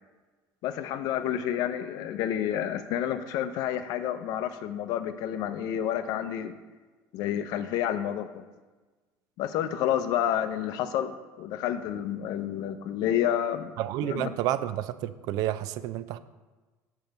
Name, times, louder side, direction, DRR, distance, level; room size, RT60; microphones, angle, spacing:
voice 1, 0.6-6.6 7.1-8.4 9.4-13.7 14.0-14.3, left 10 dB, 60° left, 10 dB, 0.5 m, -29 dB
voice 2, 13.8-16.2, right 12 dB, 60° right, 14 dB, 0.4 m, -30 dB
7.0 x 4.5 x 6.5 m, 1.3 s
cardioid pair, 165°, 7 cm